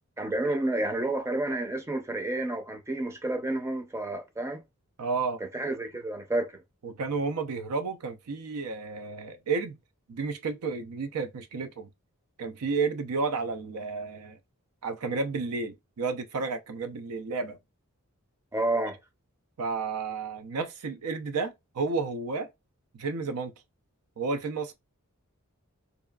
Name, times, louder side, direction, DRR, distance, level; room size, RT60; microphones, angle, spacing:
voice 1, 0.2-4.6 5.5-6.5 18.5-19.0, right 2 dB, 10° right, 0.5 m, -30 dB
voice 2, 5.0-5.4 6.8-9.8 10.1-11.9 12.4-14.4 14.8-17.6 19.6-22.5 22.9-23.5 24.2-24.7, right 4 dB, 85° right, 0.5 m, -31 dB
2.7 x 2.3 x 2.2 m
head